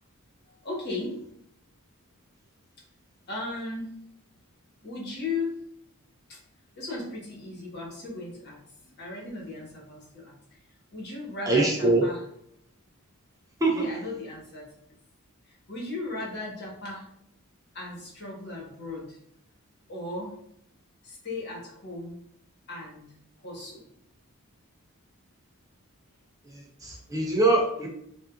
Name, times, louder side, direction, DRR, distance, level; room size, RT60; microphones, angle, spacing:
voice 1, 0.6-1.2 3.3-3.9 4.8-5.5 6.3-6.4 6.7-8.6 8.8-10.3 10.9-12.2 13.7-14.6 15.5-17.1 17.7-19.2 19.9-20.3 21.0-22.2 22.7-23.1 23.4-23.9, left 2 dB, 45° left, -3 dB, 1.4 m, -36 dB
voice 2, 11.5-12.0 13.6-13.9 26.8-27.9, right 2 dB, 15° right, -1 dB, 0.5 m, -23 dB
5.4 x 2.5 x 2.4 m, 0.73 s
head